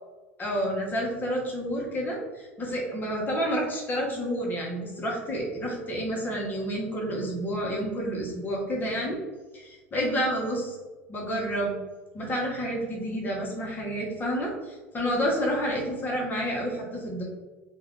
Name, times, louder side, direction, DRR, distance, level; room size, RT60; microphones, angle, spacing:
voice 1, 0.4-9.2 9.5-10.7 11.1-11.8 12.1-17.2, equal, 30° left, -2 dB, 1.1 m, -29 dB
2.7 x 2.4 x 3.5 m, 1.2 s
supercardioid pair, 95°, 6 cm